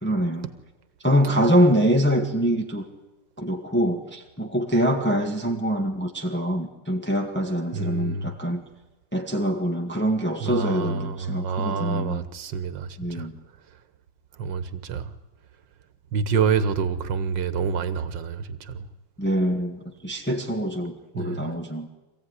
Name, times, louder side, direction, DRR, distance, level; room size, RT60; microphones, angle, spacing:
voice 1, 0.0-0.5 1.0-2.9 3.4-8.6 9.1-12.2 13.0-13.4 19.2-21.9, equal, 5° left, 1.8 m, -24 dB
voice 2, 7.7-8.3 10.4-13.3 14.4-15.1 16.1-18.9 21.1-21.5, right 5 dB, 85° right, 1.9 m, -27 dB
25.5 x 16.5 x 9.8 m
omnidirectional pair, 1.9 m